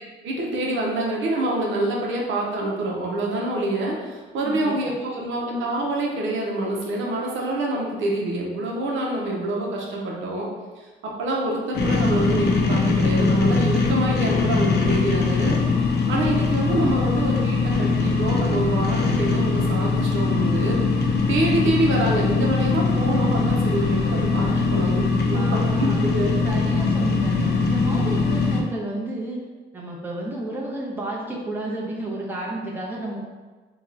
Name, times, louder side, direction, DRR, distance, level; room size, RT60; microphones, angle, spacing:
voice 1, 0.2-10.5 10.8-15.6 16.1-20.8 21.3-26.3, right 1 dB, 75° right, -2 dB, 0.7 m, -26 dB
sound 1, 11.7-28.6, left 4 dB, 55° left, 0.6 m, -21 dB
voice 2, 24.4-24.7 25.3-26.2 26.4-29.4 29.7-33.2, right 1 dB, 10° right, -4 dB, 0.8 m, -31 dB
2.9 x 2.3 x 3.8 m, 1.3 s
cardioid pair, 90°, 20 cm